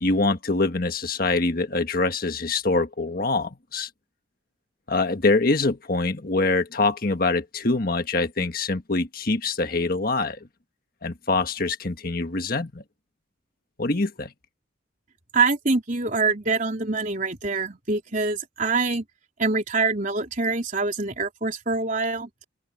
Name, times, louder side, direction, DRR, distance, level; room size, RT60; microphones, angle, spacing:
voice 1, 0.0-3.9 4.9-10.4 11.0-12.8 13.8-14.3, left 3 dB, 45° left, 1.5 m, -24 dB
voice 2, 15.3-19.0 19.4-22.3, right 3 dB, 40° right, 3.7 m, -25 dB
open air
head